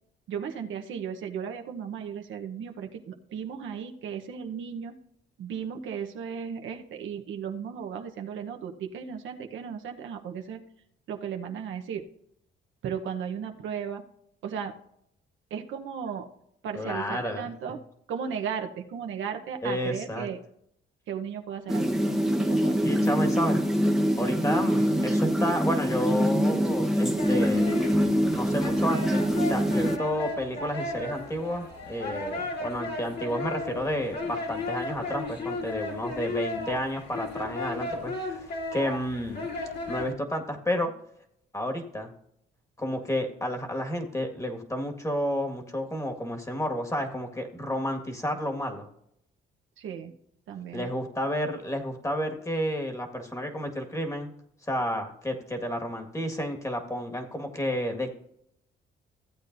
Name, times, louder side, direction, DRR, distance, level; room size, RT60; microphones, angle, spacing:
voice 1, 0.3-5.0 5.4-10.6 11.1-12.1 12.8-14.0 14.4-14.7 15.5-16.3 16.6-17.8 18.1-20.4 21.1-22.1 22.4-23.0 49.8-50.1 50.5-50.9, right 7 dB, 75° right, 4 dB, 1.0 m, -35 dB
voice 2, 16.7-17.5 19.6-20.3 22.8-23.6 24.2-27.7 28.3-39.5 39.9-40.9 41.5-42.1 42.8-48.9 50.7-54.3 54.7-58.1, equal, 15° left, 4 dB, 1.7 m, -31 dB
sound 1, 21.7-30.0, equal, ahead, 0.9 m, -24 dB
sound 2, 27.2-40.1, left 2 dB, 55° left, 3.0 m, -35 dB
15.0 x 8.3 x 2.6 m, 0.73 s
cardioid pair, 90°, 20 cm